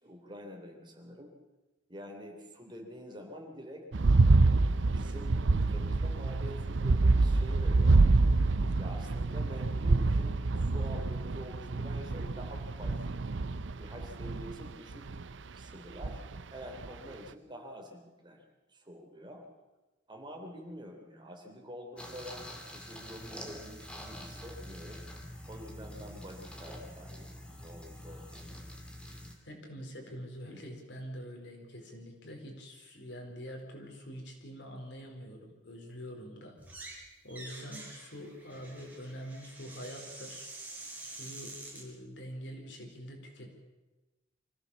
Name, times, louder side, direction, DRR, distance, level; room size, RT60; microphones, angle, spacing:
voice 1, 0.0-1.3 1.9-3.9 4.5-8.3 8.8-13.2 13.7-15.2 15.5-16.2 16.5-18.4 18.7-19.4 20.1-25.0 25.5-28.5, equal, 25° right, 2 dB, 3.4 m, -47 dB
sound 1, 3.9-15.3 16.0-16.4 16.8-16.9, right 3 dB, 85° right, 0.6 m, -27 dB
sound 2, 22.0-29.3, equal, 5° left, 2.8 m, -46 dB
voice 2, 29.4-36.6 37.2-40.5 41.0-43.6, equal, 75° left, 2 dB, 4.6 m, -45 dB
sound 3, 36.6-37.0 37.3-41.8, right 2 dB, 10° right, 6.2 m, -47 dB
25.0 x 16.0 x 7.2 m, 1.1 s
head